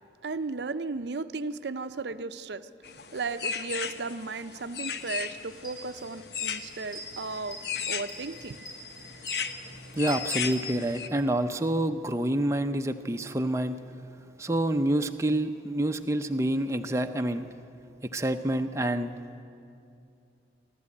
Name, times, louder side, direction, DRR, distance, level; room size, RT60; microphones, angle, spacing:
voice 1, 0.2-2.7 3.1-7.6 7.9-8.6, right 3 dB, 75° right, 12 dB, 0.6 m, -35 dB
sound 1, 2.8-11.1, left 7 dB, 70° left, 0.9 m, -37 dB
sound 2, 5.0-5.2 5.5-11.3, equal, 50° left, 6.6 m, -43 dB
voice 2, 10.0-13.8 14.4-17.5 18.0-19.1, right 1 dB, 15° right, 6 dB, 0.7 m, -27 dB
28.0 x 12.5 x 8.5 m, 2.6 s
head